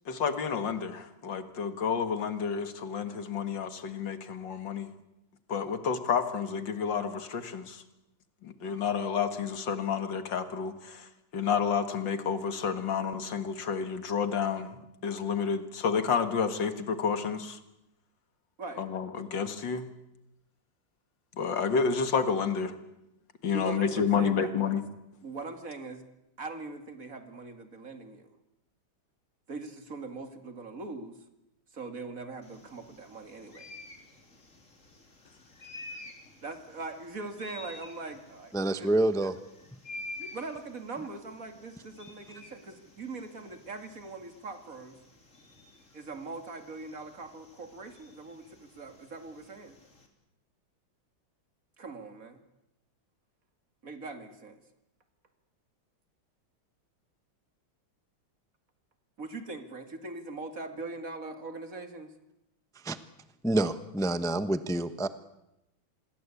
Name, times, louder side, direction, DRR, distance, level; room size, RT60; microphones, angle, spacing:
voice 1, 0.1-4.9 5.5-7.8 8.4-17.6 18.8-19.9 21.4-22.7 23.4-24.8, left 6 dB, 65° left, 10 dB, 2.4 m, -30 dB
voice 2, 23.5-24.7 25.2-26.0 26.4-28.2 29.5-31.2 31.7-33.7 36.4-38.5 38.8-38.9 40.2-45.0 45.9-49.8 51.8-52.4 53.8-54.6 59.2-62.1, right 3 dB, 40° right, 7 dB, 2.6 m, -41 dB
sound 1, 32.4-50.1, left 2 dB, 35° left, 3.7 m, -50 dB
voice 3, 38.5-39.3 62.8-63.0 63.4-65.1, right 1 dB, 5° left, 12 dB, 0.3 m, -27 dB
27.0 x 21.5 x 8.4 m, 0.88 s
omnidirectional pair, 2.2 m